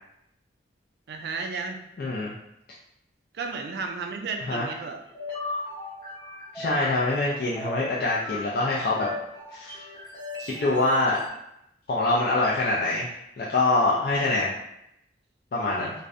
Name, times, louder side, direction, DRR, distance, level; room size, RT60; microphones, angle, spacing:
voice 1, 1.1-1.8 3.3-5.0 15.8-15.9, right 4 dB, 65° right, 3 dB, 0.3 m, -33 dB
voice 2, 2.0-2.3 4.5-4.7 6.5-9.1 9.5-9.8 10.4-11.2 11.9-13.1 13.4-14.5 15.5-15.9, left 2 dB, 55° left, -6 dB, 0.3 m, -24 dB
sound 1, 5.0-11.3, left 2 dB, 20° left, 0.7 m, -38 dB
2.5 x 2.0 x 2.4 m, 0.80 s
head